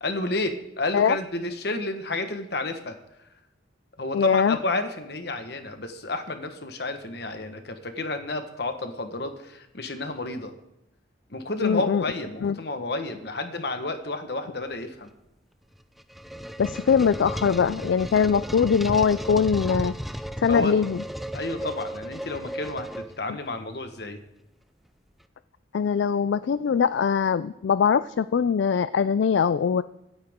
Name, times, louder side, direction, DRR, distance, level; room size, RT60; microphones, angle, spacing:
voice 1, 0.0-2.9 4.0-10.5 11.3-15.1 20.5-20.8 21.3-24.2, left 2 dB, 60° left, 7 dB, 1.3 m, -31 dB
voice 2, 4.1-4.6 11.6-12.0 12.4-12.5 16.6-19.9 20.4-21.0 25.7-29.8, left 6 dB, 75° left, 14 dB, 0.3 m, -22 dB
sound 1, 15.7-23.5, equal, ahead, 0.4 m, -34 dB
25.0 x 8.8 x 3.7 m, 0.90 s
head